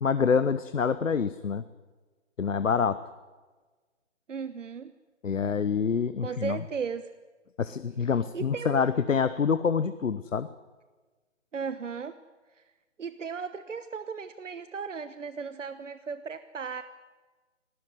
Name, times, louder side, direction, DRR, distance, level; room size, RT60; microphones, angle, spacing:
voice 1, 0.0-1.6 2.4-3.0 5.2-6.6 7.6-10.5, left 6 dB, 80° left, 14 dB, 1.1 m, -26 dB
voice 2, 4.3-4.9 6.2-7.0 8.3-8.9 11.5-12.1 12.6-12.7 13.0-16.8, right 6 dB, 75° right, 11 dB, 1.2 m, -36 dB
19.5 x 17.0 x 9.6 m, 1.3 s
hypercardioid pair, 165°, 38 cm